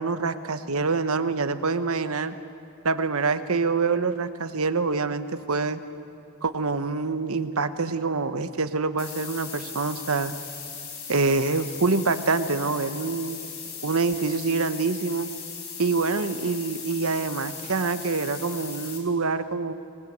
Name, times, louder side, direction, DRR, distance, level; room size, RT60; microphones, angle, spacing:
voice 1, 0.0-2.3 2.8-5.8 6.4-10.3 11.1-13.4 13.8-15.3 15.8-19.7, right 4 dB, 75° right, 11 dB, 1.1 m, -26 dB
sound 1, 9.0-19.0, left 6 dB, 70° left, 4.5 m, -38 dB
24.5 x 20.0 x 8.1 m, 2.7 s
head